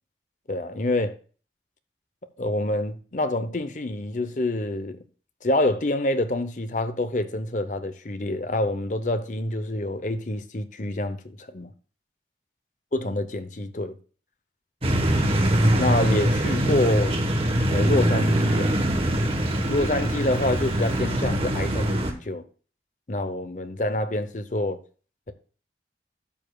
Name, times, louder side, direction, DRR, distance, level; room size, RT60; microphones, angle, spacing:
voice 1, 0.5-1.1 2.4-5.0 5.4-11.7 12.9-13.9 14.8-15.1 15.8-17.2 17.7-18.7 19.7-22.4 23.1-24.8, left 1 dB, 45° left, 0.8 m, -27 dB
sound 1, 14.8-22.1, right 1 dB, 35° right, 1.1 m, -23 dB
12.5 x 7.1 x 2.3 m
head